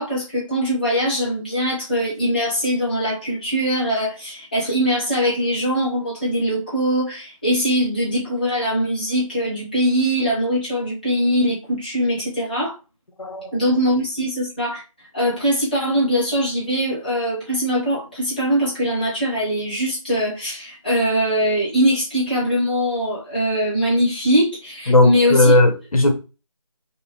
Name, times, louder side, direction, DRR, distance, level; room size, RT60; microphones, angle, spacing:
voice 1, 0.0-12.8 13.5-14.8 15.1-25.5, equal, 15° left, 1.3 m, -22 dB
voice 2, 13.2-13.5 24.9-26.1, left 2 dB, 80° left, 1.1 m, -16 dB
5.2 x 2.2 x 3.3 m
figure-of-eight pair, 180°, 18 cm